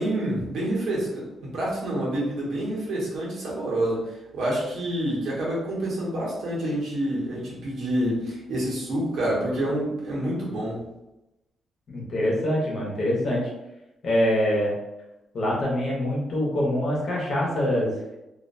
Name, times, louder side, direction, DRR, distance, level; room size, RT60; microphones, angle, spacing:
voice 1, 0.0-10.8, right 1 dB, 75° right, -5 dB, 1.1 m, -28 dB
voice 2, 11.9-13.4 14.0-14.7 15.3-17.9, left 1 dB, 50° left, -3 dB, 0.9 m, -24 dB
2.5 x 2.2 x 2.5 m, 0.95 s
cardioid pair, 140°, 0 cm